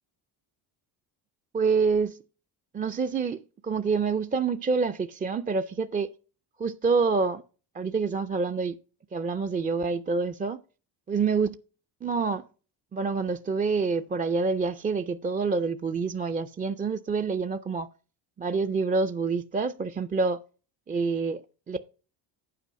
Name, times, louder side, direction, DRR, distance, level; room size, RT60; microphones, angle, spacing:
voice 1, 1.5-2.2 2.7-6.1 6.6-7.4 7.7-8.8 9.1-10.6 11.1-11.5 12.0-12.4 12.9-17.9 18.4-20.4 20.9-21.4 21.7-21.8, right 4 dB, 20° right, 0.3 m, -27 dB
8.3 x 4.6 x 6.1 m
supercardioid pair, 85°, 46 cm